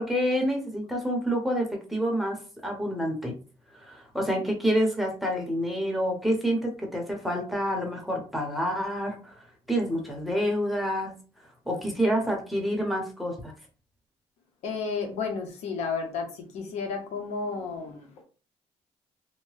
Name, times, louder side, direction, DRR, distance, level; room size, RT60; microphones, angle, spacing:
voice 1, 0.0-2.4 2.6-3.3 3.8-9.4 9.7-11.1 11.7-13.5, equal, ahead, 1 dB, 0.8 m, -28 dB
voice 2, 14.6-18.1, left 5 dB, 85° left, 4 dB, 0.8 m, -32 dB
2.8 x 2.1 x 3.1 m, 0.36 s
cardioid pair, 125°, 11 cm